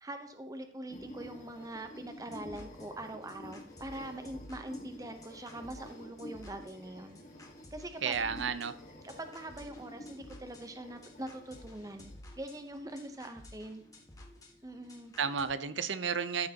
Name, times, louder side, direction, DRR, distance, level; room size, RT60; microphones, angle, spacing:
voice 1, 0.0-7.2 7.7-8.2 9.0-13.8 14.6-15.1, right 1 dB, 20° right, 6 dB, 0.8 m, -43 dB
sound 1, 0.9-12.2, left 1 dB, 45° left, 1.5 m, -50 dB
sound 2, 2.1-15.4, left 1 dB, 20° left, 1.5 m, -54 dB
voice 2, 8.0-8.7 15.2-16.5, right 6 dB, 80° right, 12 dB, 0.8 m, -32 dB
14.0 x 6.4 x 2.9 m, 0.63 s
head